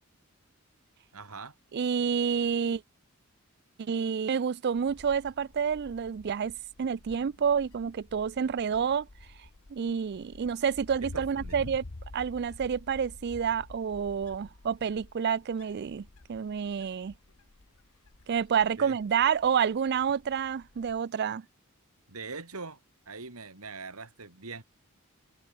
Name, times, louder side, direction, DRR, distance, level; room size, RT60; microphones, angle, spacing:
voice 1, 1.1-1.5 11.0-11.8 18.8-19.0 22.1-22.8 23.1-24.6, right 4 dB, 85° right, 3.1 m, -42 dB
voice 2, 1.7-2.8 3.8-9.1 9.7-11.8 12.1-17.1 18.3-21.4, right 7 dB, 50° right, 0.4 m, -29 dB
Wind, 4.7-21.0, left 2 dB, 75° left, 1.3 m, -50 dB
head